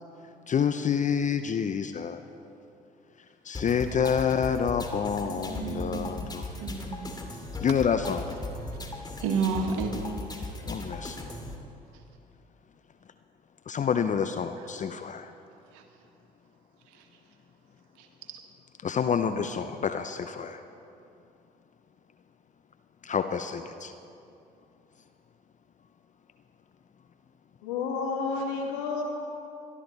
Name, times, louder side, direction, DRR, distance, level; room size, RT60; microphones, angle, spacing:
voice 1, 0.5-2.2 3.4-6.5 7.6-8.2 10.7-11.2 13.7-15.3 18.8-20.6 23.0-23.9, left 7 dB, 35° left, 9 dB, 0.7 m, -28 dB
sound 1, 3.5-11.6, left 2 dB, 20° left, 2.4 m, -38 dB
voice 2, 5.2-6.4 6.6-7.1 9.2-9.9 15.7-15.8 18.0-18.4, right 5 dB, 70° right, 4 dB, 1.7 m, -31 dB
voice 3, 27.6-29.0, left 4 dB, 75° left, -1 dB, 2.5 m, -30 dB
22.0 x 12.5 x 4.1 m, 2.7 s
hypercardioid pair, 55°, 21 cm